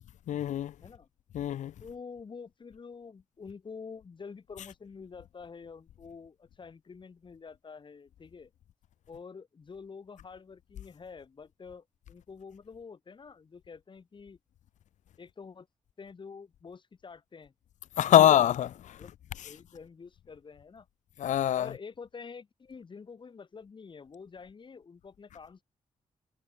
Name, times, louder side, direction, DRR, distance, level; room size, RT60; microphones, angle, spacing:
voice 1, 0.3-0.7 1.3-1.7 18.0-19.0 21.2-21.7, left 11 dB, 75° left, 0.4 m, -23 dB
voice 2, 1.8-8.5 9.1-14.4 15.2-15.7 16.0-17.5 18.1-18.3 19.0-19.1 19.4-20.9 21.5-25.6, left 5 dB, 40° left, 7.4 m, -47 dB
wide cardioid pair, 150°, 13 cm